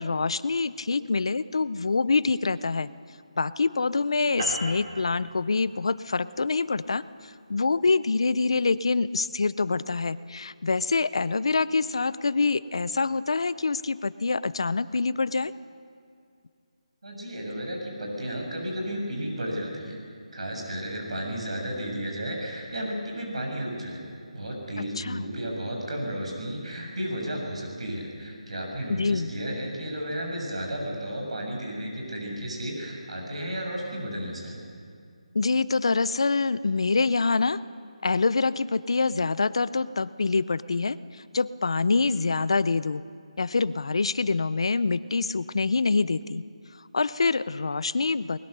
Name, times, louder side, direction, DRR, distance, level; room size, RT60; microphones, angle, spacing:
voice 1, 0.0-2.9 3.4-15.5 25.0-25.2 28.9-29.3 35.3-37.6 38.0-41.0 41.3-43.0 43.4-46.4 46.9-48.4, left 4 dB, 50° left, 17 dB, 0.5 m, -25 dB
sound 1, 4.4-9.1, right 1 dB, 40° right, 4.5 m, -39 dB
voice 2, 17.0-20.0 20.3-24.0 24.3-34.6, equal, 65° right, 1 dB, 6.7 m, -33 dB
21.5 x 20.5 x 6.7 m, 2.3 s
hypercardioid pair, 175°, 4 cm